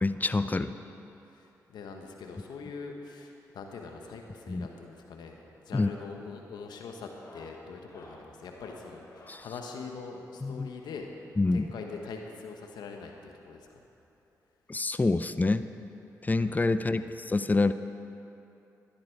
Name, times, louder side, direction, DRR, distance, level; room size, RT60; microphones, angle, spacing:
voice 1, 0.0-0.7 4.5-4.7 5.7-5.9 9.3-9.5 10.4-10.7 11.4-11.7 14.7-15.7 16.2-17.7, left 3 dB, 25° left, 12 dB, 0.5 m, -27 dB
voice 2, 1.3-5.4 5.6-11.1 11.5-13.8 16.7-17.1, left 4 dB, 80° left, 3 dB, 1.2 m, -43 dB
sound 1, 5.6-5.8 6.1-6.5 7.0-9.5 10.8-12.2 13.3-13.4 13.6-13.7 14.2-14.3 15.5-15.6 17.0-17.1, left 1 dB, 50° left, 2.8 m, -56 dB
13.5 x 10.5 x 4.7 m, 2.8 s
supercardioid pair, 45°, 7 cm